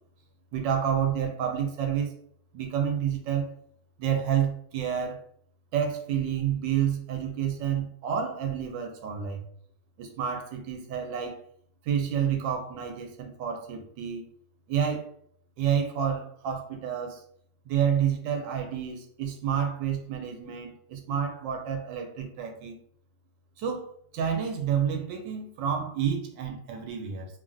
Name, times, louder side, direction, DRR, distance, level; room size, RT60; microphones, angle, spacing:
voice 1, 0.5-2.1 2.5-3.5 4.0-5.2 5.7-9.4 10.0-11.4 11.8-14.2 14.7-15.1 15.6-17.2 17.6-22.8 23.6-23.9 24.1-27.3, right 8 dB, 80° right, 3 dB, 1.2 m, -29 dB
3.3 x 2.3 x 2.5 m, 0.65 s
omnidirectional pair, 2.0 m